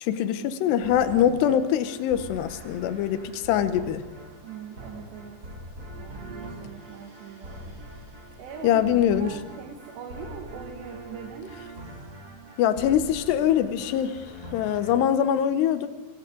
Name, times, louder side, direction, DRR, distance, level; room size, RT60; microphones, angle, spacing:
voice 1, 0.0-4.0 8.6-9.3 12.6-14.3 14.5-15.9, left 10 dB, 85° left, 10 dB, 3.1 m, -23 dB
sound 1, 0.8-15.0, right 1 dB, 25° right, 3.0 m, -43 dB
voice 2, 4.4-5.4 6.0-7.8 8.4-8.9 9.2-11.5, right 6 dB, 80° right, 2 dB, 3.8 m, -41 dB
27.5 x 25.5 x 3.9 m, 1.1 s
omnidirectional pair, 4.8 m